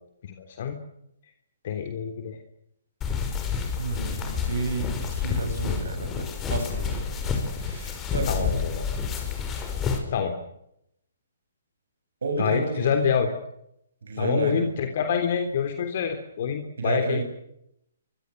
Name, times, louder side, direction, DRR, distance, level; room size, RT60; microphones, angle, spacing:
voice 1, 0.2-0.8 1.6-2.4 8.3-8.8 10.1-10.3 12.4-13.3 14.2-17.2, left 7 dB, 50° left, 6 dB, 3.5 m, -26 dB
sound 1, 3.0-10.0, left 6 dB, 20° left, 5.9 m, -29 dB
voice 2, 3.7-7.0 7.6-8.5 12.2-12.9 14.0-14.7 16.4-16.5 16.8-17.2, right 3 dB, 75° right, 5 dB, 7.7 m, -31 dB
25.5 x 25.0 x 6.7 m, 0.78 s
hypercardioid pair, 135°, 0 cm